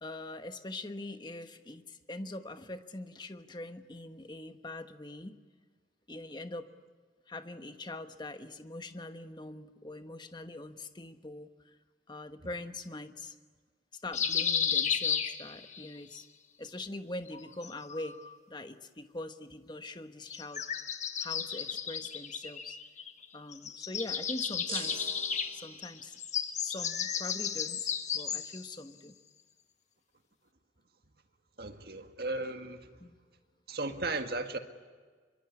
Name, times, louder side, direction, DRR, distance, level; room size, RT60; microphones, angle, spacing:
voice 1, 0.0-5.4 6.1-6.7 7.3-11.5 12.1-13.3 14.0-16.3 16.6-18.2 18.5-20.6 21.2-22.8 23.3-25.1 25.5-26.2 26.6-29.1 33.0-33.2, left 2 dB, 25° left, 1.2 m, -43 dB
sound 1, 14.1-15.9 17.3-18.3 20.3-23.2 23.5-28.7, left 7 dB, 40° left, 1.5 m, -34 dB
sound 2, 24.7-26.0, right 6 dB, 35° right, 5.7 m, -44 dB
voice 2, 31.6-32.9 33.7-34.6, right 2 dB, 55° right, 1.8 m, -35 dB
25.5 x 23.0 x 9.7 m
head